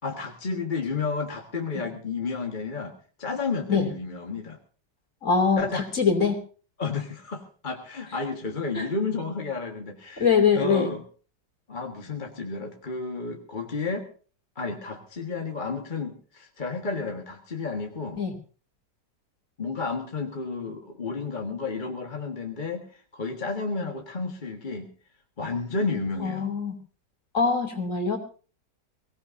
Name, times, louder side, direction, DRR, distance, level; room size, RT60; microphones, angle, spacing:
voice 1, 0.0-4.6 5.6-5.9 6.8-10.3 10.5-11.0 11.7-14.1 14.5-18.2 19.6-24.9 25.4-26.5, left 4 dB, 30° left, 3 dB, 1.7 m, -31 dB
voice 2, 5.2-6.4 8.7-8.9 10.2-10.9 18.2-18.3 26.2-26.7 27.3-28.2, left 5 dB, 45° left, 5 dB, 3.4 m, -23 dB
23.5 x 17.5 x 2.7 m, 0.38 s
omnidirectional pair, 1.9 m